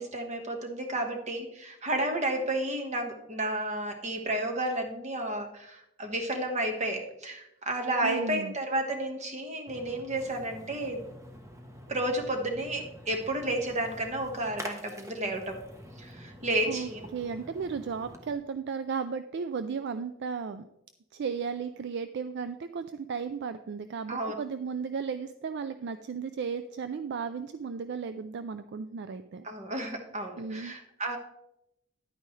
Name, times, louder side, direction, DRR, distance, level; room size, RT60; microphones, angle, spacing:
voice 1, 0.0-11.0 11.9-15.6 16.0-17.0 24.1-24.3 29.4-31.2, right 1 dB, 35° right, 4 dB, 1.4 m, -32 dB
voice 2, 8.0-8.5 16.7-20.7 21.1-29.4 30.4-30.7, right 5 dB, 60° right, 11 dB, 0.4 m, -35 dB
Splash splatter, 9.7-18.3, equal, 15° right, 1.0 m, -47 dB
10.5 x 9.1 x 3.2 m, 0.83 s
head